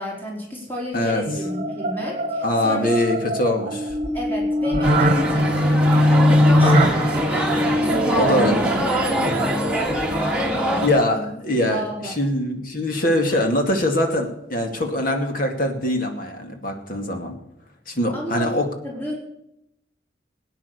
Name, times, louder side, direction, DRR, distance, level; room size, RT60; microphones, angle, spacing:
voice 1, 0.0-2.9 4.1-12.3 18.1-18.6 18.8-19.2, equal, 10° left, -3 dB, 4.8 m, -32 dB
sound 1, 1.3-10.4, equal, 40° right, 1.5 m, -21 dB
voice 2, 2.4-4.0 8.1-8.7 9.3-9.5 10.8-17.3 17.9-18.7, left 1 dB, 50° left, 4 dB, 2.5 m, -23 dB
sound 2, 4.8-10.9, right 1 dB, 5° right, 2.2 m, -24 dB
18.5 x 9.6 x 6.7 m, 0.81 s
head